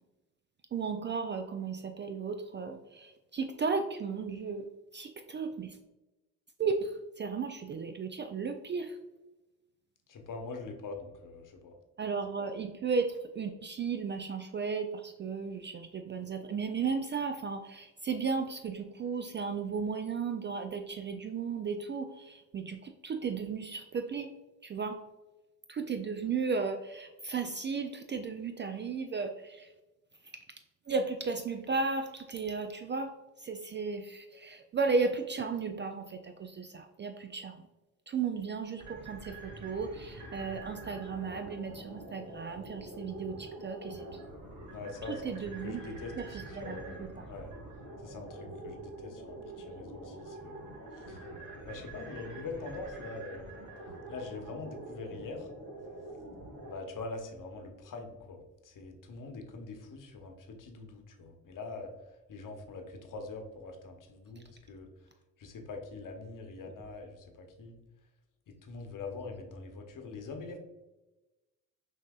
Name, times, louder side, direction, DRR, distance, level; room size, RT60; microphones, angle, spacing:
voice 1, 0.7-4.7 4.9-5.8 6.6-9.0 12.0-24.3 24.6-25.0 25.7-29.7 30.2-30.3 30.9-37.6 38.1-44.2 45.1-47.3 64.4-64.5, right 5 dB, 30° right, 7 dB, 0.4 m, -35 dB
voice 2, 10.1-11.7 44.7-45.3 45.6-47.5 48.0-51.2 51.7-53.5 54.1-55.5 56.7-61.9 62.3-64.9 65.4-67.8 68.5-70.6, left 3 dB, 50° left, 4 dB, 1.0 m, -43 dB
sound 1, 38.8-56.7, right 2 dB, 45° right, 1.4 m, -46 dB
5.8 x 2.8 x 2.3 m, 1.1 s
hypercardioid pair, 50°, 41 cm